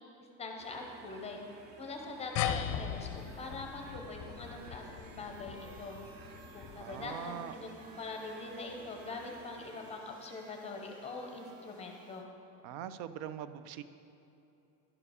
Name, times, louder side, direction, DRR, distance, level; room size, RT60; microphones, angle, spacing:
voice 1, 0.4-1.4 1.8-3.1 3.4-6.0 6.5-12.3, left 3 dB, 15° left, 2 dB, 0.7 m, -43 dB
sound 1, 0.6-10.0, right 3 dB, 30° right, 0.5 m, -55 dB
sound 2, 2.4-7.2, left 9 dB, 50° left, 0.5 m, -39 dB
sound 3, 2.6-12.2, right 3 dB, 65° right, 1.0 m, -59 dB
voice 2, 6.8-7.5 12.6-13.8, right 10 dB, 85° right, 13 dB, 0.5 m, -42 dB
11.0 x 4.8 x 4.9 m, 2.8 s
cardioid pair, 165°, 38 cm